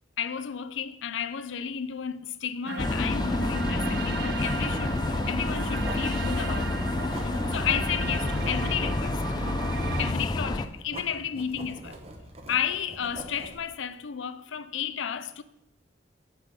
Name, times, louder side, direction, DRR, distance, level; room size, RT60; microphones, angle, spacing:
voice 1, 0.2-6.9 7.2-9.4 10.0-12.0 12.5-15.4, left 8 dB, 75° left, 0.5 m, -32 dB
sound 1, 2.6-10.1, right 5 dB, 55° right, 0.6 m, -36 dB
sound 2, 2.8-10.7, left 2 dB, 20° left, 0.3 m, -29 dB
Writing, 4.3-13.6, right 1 dB, 30° right, 1.1 m, -42 dB
8.3 x 5.6 x 7.3 m
head